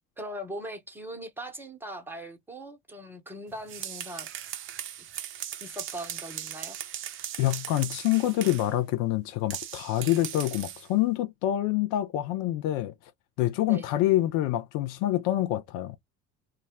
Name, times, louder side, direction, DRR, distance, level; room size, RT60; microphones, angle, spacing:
voice 1, 0.2-4.3 5.6-6.8 13.6-13.9, right 1 dB, 5° right, 0.8 m, -40 dB
sound 1, 3.5-8.7 9.5-10.9, right 11 dB, 30° right, 0.4 m, -38 dB
voice 2, 7.4-12.9 13.4-16.0, left 14 dB, 40° left, 0.5 m, -26 dB
2.3 x 2.0 x 3.4 m
figure-of-eight pair, 65°, 48 cm